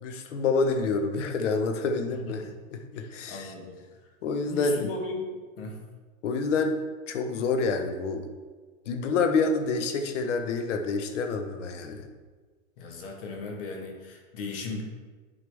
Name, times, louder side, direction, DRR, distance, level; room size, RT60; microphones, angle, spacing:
voice 1, 0.0-3.5 4.2-4.9 6.2-6.8 7.1-8.3 8.9-12.1, left 4 dB, 65° left, 6 dB, 1.1 m, -28 dB
voice 2, 2.2-2.5 2.9-3.8 4.4-5.8 12.8-14.8, left 3 dB, 45° left, 2 dB, 1.4 m, -37 dB
9.9 x 4.7 x 3.5 m, 1.4 s
hypercardioid pair, 155°, 39 cm